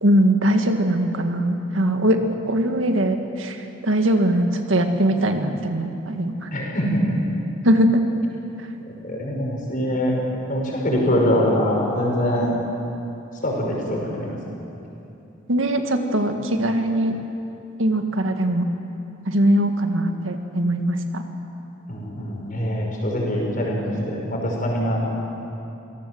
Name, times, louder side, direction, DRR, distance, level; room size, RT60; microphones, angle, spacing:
voice 1, 0.0-2.2 2.5-3.6 3.8-6.5 7.6-8.0 15.5-17.2 17.8-18.7 19.3-21.2, right 1 dB, 80° right, 5 dB, 1.9 m, -21 dB
voice 2, 6.5-7.0 8.9-10.2 10.5-12.5 13.4-14.4 21.9-25.1, equal, 45° left, -1 dB, 6.0 m, -23 dB
26.5 x 18.0 x 7.9 m, 2.8 s
head